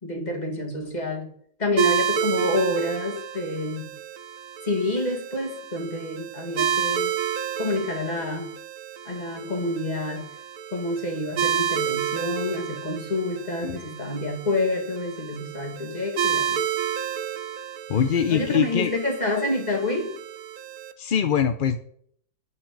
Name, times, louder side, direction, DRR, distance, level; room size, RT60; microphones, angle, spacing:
voice 1, 0.0-1.3 1.6-3.9 4.6-7.1 7.6-8.5 9.0-10.3 10.7-16.6 18.3-20.1, left 2 dB, 30° left, 2 dB, 2.4 m, -28 dB
sound 1, 1.8-20.9, right 8 dB, 75° right, 1.3 m, -30 dB
voice 2, 17.9-18.9 21.0-21.8, left 7 dB, 50° left, 9 dB, 0.6 m, -23 dB
9.5 x 6.0 x 8.6 m, 0.64 s
omnidirectional pair, 1.6 m